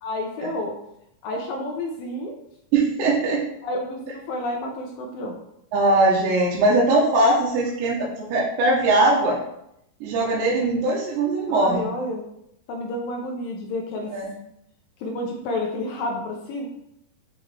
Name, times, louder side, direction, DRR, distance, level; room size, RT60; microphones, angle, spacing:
voice 1, 0.0-0.7 1.2-2.3 3.6-5.4 11.5-12.2 12.7-14.1 15.0-16.7, left 1 dB, 80° left, 0 dB, 2.1 m, -30 dB
voice 2, 2.7-3.4 5.7-9.4 10.0-11.9 14.1-14.3, right 2 dB, 90° right, -5 dB, 3.3 m, -20 dB
7.1 x 5.0 x 3.3 m, 0.79 s
omnidirectional pair, 4.9 m